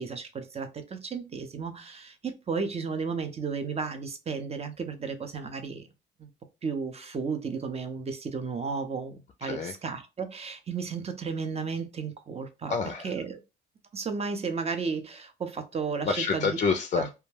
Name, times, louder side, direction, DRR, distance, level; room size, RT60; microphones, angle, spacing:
voice 1, 0.0-5.9 6.2-6.3 6.6-12.7 13.0-13.4 13.9-16.5 16.9-17.1, right 5 dB, 30° right, 0.5 m, -33 dB
voice 2, 9.4-9.7 12.7-13.1 16.0-17.1, left 5 dB, 40° left, 0.4 m, -28 dB
2.2 x 2.1 x 3.2 m
cardioid pair, 90°, 20 cm